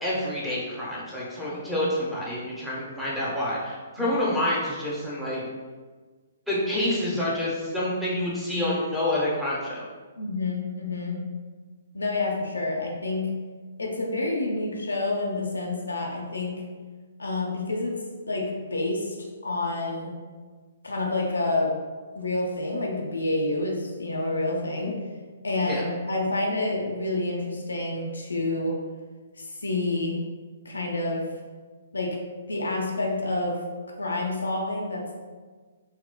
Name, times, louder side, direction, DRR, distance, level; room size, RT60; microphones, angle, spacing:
voice 1, 0.0-5.4 6.5-9.8 25.6-25.8, left 1 dB, 5° right, -8 dB, 0.9 m, -28 dB
voice 2, 10.2-11.2 11.9-13.3 13.8-16.6 17.2-17.9 18.3-19.2 19.4-20.1 20.8-21.8 22.1-25.0 25.4-28.8 29.4-30.2 30.6-31.3 31.9-32.2 32.5-33.6 34.0-35.1, left 2 dB, 80° left, -1 dB, 0.6 m, -28 dB
4.1 x 2.2 x 2.2 m, 1.4 s
figure-of-eight pair, 125°, 0 cm